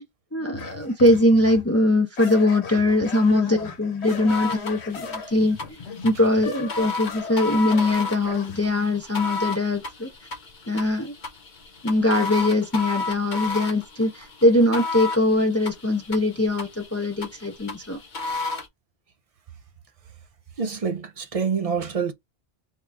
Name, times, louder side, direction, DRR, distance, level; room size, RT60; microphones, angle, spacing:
voice 1, 0.3-5.6 6.0-10.1 10.7-11.1 11.8-18.0, left 1 dB, 25° left, 0.4 m, -21 dB
sound 1, 0.5-1.7 2.2-8.6, left 5 dB, 85° left, 1.1 m, -38 dB
Floppy disk drive - write, 4.3-18.7, left 3 dB, 50° left, 0.9 m, -33 dB
voice 2, 20.6-22.1, right 6 dB, 50° right, 0.4 m, -26 dB
3.6 x 2.3 x 3.3 m
omnidirectional pair, 1.1 m